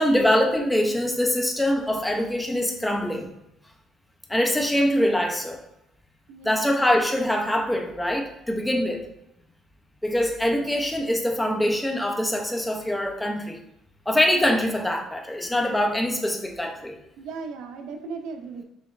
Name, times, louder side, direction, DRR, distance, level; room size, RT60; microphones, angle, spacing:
voice 1, 0.0-3.3 4.3-5.6 6.4-9.1 10.0-13.6 14.1-17.0, left 1 dB, 5° left, 1 dB, 0.5 m, -23 dB
voice 2, 6.3-6.7 17.2-18.6, right 4 dB, 90° right, 5 dB, 0.5 m, -37 dB
5.0 x 2.9 x 2.4 m, 0.83 s
cardioid pair, 165°, 0 cm